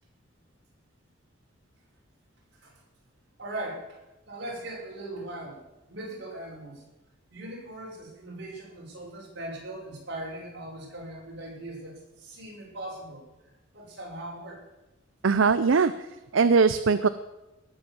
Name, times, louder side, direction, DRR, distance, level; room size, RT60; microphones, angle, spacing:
voice 1, 3.4-4.0 4.3-5.6 5.9-6.8 7.3-13.2 13.7-14.6, right 1 dB, 55° right, -3 dB, 6.0 m, -39 dB
voice 2, 15.2-15.9 16.3-17.1, right 5 dB, 70° right, 12 dB, 0.6 m, -20 dB
19.0 x 7.9 x 7.1 m, 1.0 s
head